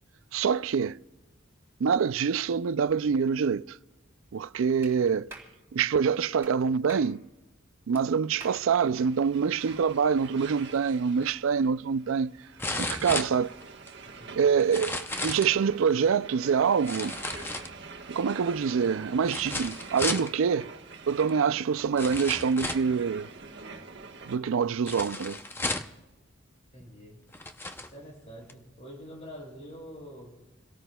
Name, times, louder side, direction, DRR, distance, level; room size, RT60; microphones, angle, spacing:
voice 1, 0.3-1.0 1.8-3.8 4.3-5.3 5.7-7.3 7.9-12.3 12.7-13.5 14.3-17.2 18.1-20.7 21.1-23.3 24.3-25.4, right 6 dB, 75° right, 0.4 m, -25 dB
Clapping, 4.8-4.9 5.3-5.5 6.4-6.5 6.9-7.1 7.9-8.0 8.4-8.6, right 2 dB, 10° right, 3.5 m, -45 dB
sound 1, 8.3-24.4, right 4 dB, 55° right, 1.3 m, -45 dB
sound 2, 11.2-11.3 12.6-13.9 14.6-15.6 16.8-18.0 19.2-20.3 21.3-21.4 22.0-22.9 24.9-26.0 26.8-26.9 27.3-27.9 28.5-28.6, left 2 dB, 10° left, 0.6 m, -34 dB
voice 2, 14.1-14.5 26.7-27.2 27.8-30.3, equal, 30° left, 7.0 m, -46 dB
29.0 x 17.5 x 2.3 m
head